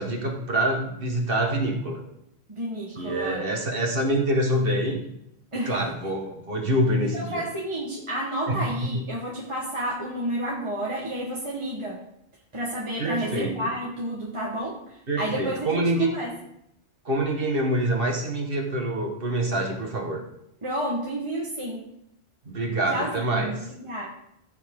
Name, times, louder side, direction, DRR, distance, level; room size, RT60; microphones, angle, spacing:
voice 1, 0.0-2.0 2.9-5.0 5.7-7.4 8.5-8.9 13.0-13.7 15.1-16.1 17.1-20.2 22.5-23.5, right 1 dB, 55° right, 2 dB, 1.9 m, -26 dB
voice 2, 2.5-3.4 5.5-5.8 7.0-12.0 12.5-14.8 15.2-16.3 20.6-21.9 22.9-24.1, right 1 dB, 25° right, -4 dB, 1.5 m, -30 dB
14.5 x 5.8 x 3.8 m, 0.79 s
omnidirectional pair, 1.1 m